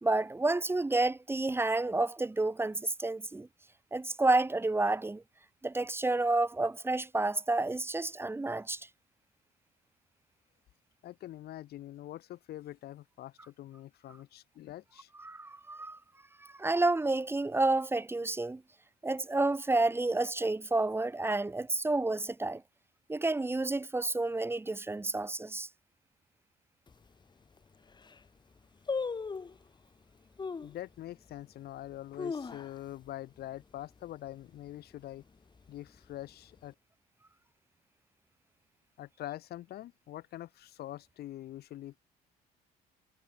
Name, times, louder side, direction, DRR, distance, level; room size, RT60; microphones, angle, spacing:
voice 1, 0.0-3.5 3.9-5.2 5.6-8.9 15.2-16.0 16.4-18.6 19.0-22.6 23.1-25.7, right 2 dB, 15° right, 2.1 m, -30 dB
voice 2, 11.0-15.1 30.6-35.2 35.7-36.7 39.0-42.0, left 14 dB, 70° left, 4.5 m, -44 dB
sound 1, 26.9-27.0 27.6-27.7 27.9-28.3 28.9-29.6 30.4-30.8 31.3-31.4 31.9-33.1 33.4-33.5 33.8-34.2 34.6-34.9 35.5-36.3 36.6-36.7, left 4 dB, 25° left, 4.0 m, -37 dB
cardioid pair, 110°, 17 cm